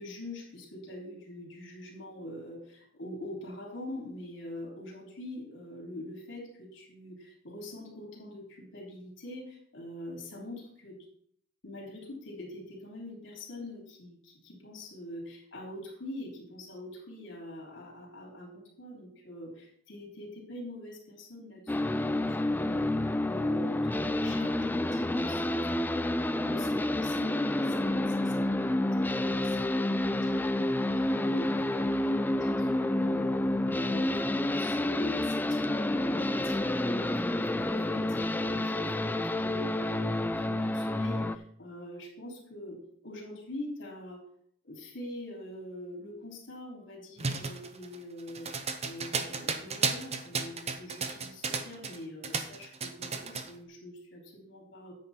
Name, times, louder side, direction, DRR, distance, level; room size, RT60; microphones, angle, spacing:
voice 1, 0.0-11.0 11.6-33.4 33.7-42.8 43.0-44.2 44.6-48.5 48.8-54.9, left 1 dB, 70° left, -3 dB, 3.4 m, -44 dB
sound 1, 21.7-41.4, left 1 dB, 10° left, 0.3 m, -29 dB
sound 2, 47.2-52.0 52.2-53.5, right 5 dB, 35° right, 0.8 m, -33 dB
9.7 x 8.0 x 4.3 m, 0.65 s
head